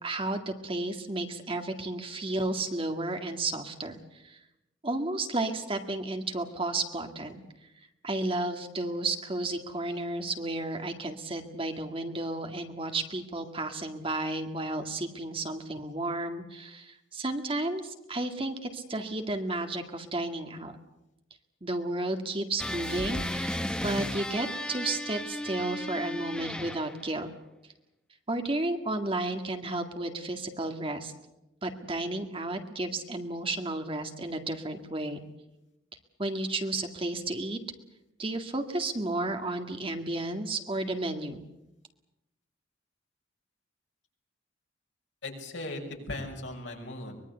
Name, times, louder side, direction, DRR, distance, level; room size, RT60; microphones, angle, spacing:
voice 1, 0.0-4.4 4.8-7.4 8.0-20.7 21.6-27.3 28.3-31.1 31.6-35.2 36.2-37.6 38.2-41.5, right 2 dB, 30° right, 6 dB, 2.0 m, -32 dB
sound 1, 22.6-27.1, left 1 dB, 5° left, 1.0 m, -34 dB
voice 2, 45.2-47.2, left 2 dB, 70° left, 2 dB, 6.0 m, -38 dB
24.0 x 21.5 x 8.1 m, 0.89 s
head